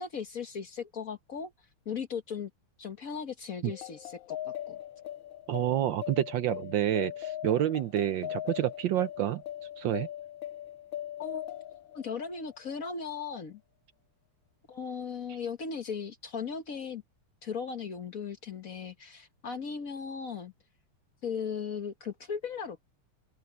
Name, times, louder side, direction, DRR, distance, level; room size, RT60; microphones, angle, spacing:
voice 1, 0.0-1.5 1.8-2.5 2.8-4.8 11.2-11.6 11.9-13.6 14.7-17.0 17.4-20.5 21.2-22.8, left 6 dB, 45° left, 1.4 m, -37 dB
sound 1, 3.7-12.7, left 12 dB, 70° left, 1.3 m, -40 dB
voice 2, 5.5-9.4 9.8-10.1, right 12 dB, 70° right, 1.3 m, -28 dB
open air
omnidirectional pair, 2.4 m